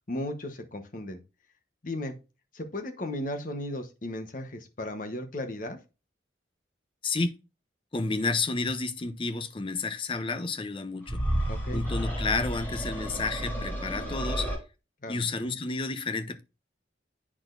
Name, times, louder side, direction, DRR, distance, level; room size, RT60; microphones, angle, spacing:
voice 1, 0.1-1.2 1.8-2.1 2.5-5.8 11.5-11.9 15.0-15.2, left 1 dB, 45° left, 1.0 m, -35 dB
voice 2, 7.0-7.3 7.9-11.2 11.7-14.5 15.1-16.4, left 3 dB, 25° left, 0.6 m, -31 dB
sound 1, 11.0-14.6, equal, 10° left, 4.4 m, -31 dB
8.6 x 6.1 x 2.6 m
head